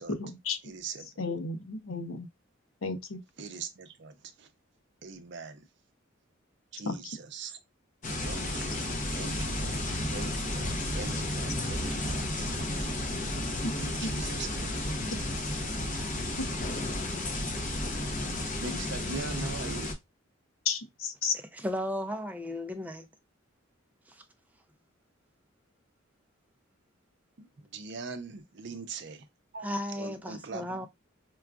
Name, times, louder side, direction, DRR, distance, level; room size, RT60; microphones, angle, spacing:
voice 1, 0.1-0.6 1.2-2.3 2.8-3.2 6.9-7.2 14.0-14.1 16.4-16.5 20.6-21.4, left 4 dB, 75° left, 0.6 m, -33 dB
voice 2, 0.6-1.1 3.4-4.5 5.0-5.6 6.7-7.6 8.2-9.8 10.1-12.3 13.8-14.9 18.6-19.9 27.4-29.3 29.5-29.7 30.0-30.8, right 4 dB, 55° right, 0.6 m, -42 dB
sound 1, 8.0-19.9, left 1 dB, 40° left, 0.8 m, -32 dB
voice 3, 21.5-23.1 24.1-24.2 29.6-30.9, left 1 dB, 10° right, 0.4 m, -35 dB
4.5 x 2.3 x 2.3 m
head